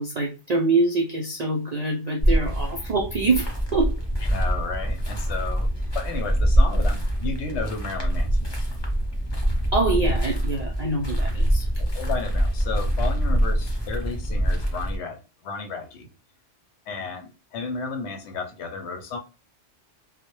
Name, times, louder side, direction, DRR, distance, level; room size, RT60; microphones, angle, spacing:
voice 1, 0.0-3.9 9.7-11.7, right 3 dB, 75° right, 0.3 m, -25 dB
sound 1, 2.2-15.0, equal, 30° left, 0.4 m, -24 dB
voice 2, 4.3-5.7 5.9-8.6 11.8-16.1 16.9-19.2, left 4 dB, 70° left, 0.8 m, -33 dB
2.1 x 2.0 x 2.9 m
omnidirectional pair, 1.3 m